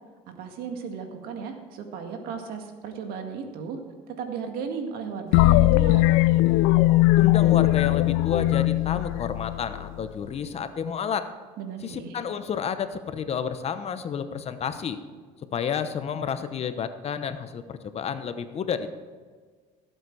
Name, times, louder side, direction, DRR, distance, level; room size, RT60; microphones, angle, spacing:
voice 1, 0.4-3.8 4.1-6.0 11.6-12.2, right 6 dB, 70° right, 4 dB, 1.9 m, -35 dB
sound 1, 5.3-10.0, left 18 dB, 80° left, 0.4 m, -20 dB
voice 2, 7.2-11.3 11.8-15.0 15.5-18.9, left 7 dB, 40° left, 10 dB, 0.9 m, -30 dB
16.5 x 8.1 x 4.8 m, 1.5 s
supercardioid pair, 100°, 16 cm